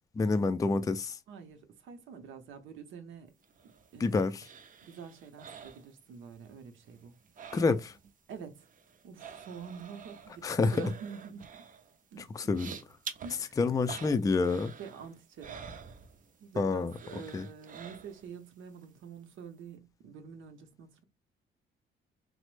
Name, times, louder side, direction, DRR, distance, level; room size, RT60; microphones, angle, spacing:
voice 1, 0.2-1.2 4.0-4.5 7.5-8.0 10.4-10.8 12.2-12.7 13.6-14.7 16.6-16.9 17.3-17.5, left 4 dB, 15° left, 0.3 m, -28 dB
voice 2, 1.3-3.3 3.6-4.2 4.8-7.1 8.3-8.7 9.0-11.7 12.1-12.8 13.2-13.6 14.8-15.6 16.4-21.0, right 6 dB, 80° right, 0.7 m, -47 dB
sound 1, 3.4-6.5 6.7-8.1 8.4-16.5 16.9-18.4 18.8-18.9, right 6 dB, 45° right, 0.5 m, -48 dB
3.0 x 2.0 x 3.1 m
cardioid pair, 90°, 20 cm